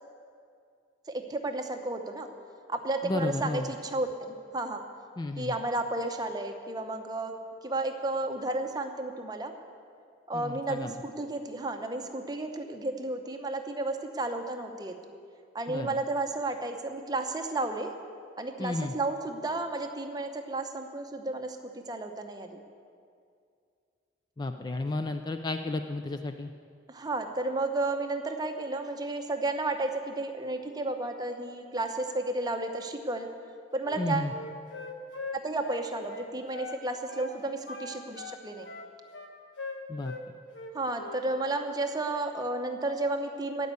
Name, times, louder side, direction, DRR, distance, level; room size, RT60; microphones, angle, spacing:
voice 1, 1.1-2.3 2.7-4.1 4.5-4.8 5.4-7.3 7.6-9.5 10.3-15.0 15.5-17.9 18.4-22.6 26.9-33.3 33.7-34.3 35.3-38.7 40.7-43.7, right 2 dB, 20° right, 5 dB, 0.8 m, -32 dB
voice 2, 3.0-3.7 5.2-5.5 10.3-10.9 15.7-16.0 18.6-18.9 24.4-26.5 34.0-34.3 39.9-40.1, left 2 dB, 20° left, 7 dB, 0.3 m, -32 dB
Wind instrument woodwind instrument, 33.8-36.8 37.1-37.3 37.7-40.2 40.5-41.2, left 3 dB, 85° left, 1.1 m, -41 dB
15.0 x 5.4 x 9.4 m, 2.3 s
head